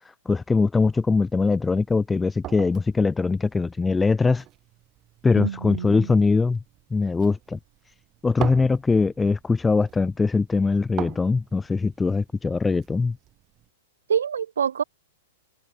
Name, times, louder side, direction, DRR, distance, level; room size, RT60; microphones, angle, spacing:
voice 1, 0.0-4.4 5.2-6.6 6.9-7.6 8.2-13.2, left 4 dB, 10° left, 0.8 m, -22 dB
sound 1, 0.8-13.7, right 14 dB, 30° right, 6.5 m, -42 dB
voice 2, 5.4-6.2 14.1-14.8, right 8 dB, 75° right, 3.8 m, -26 dB
hypercardioid pair, 110°, 0 cm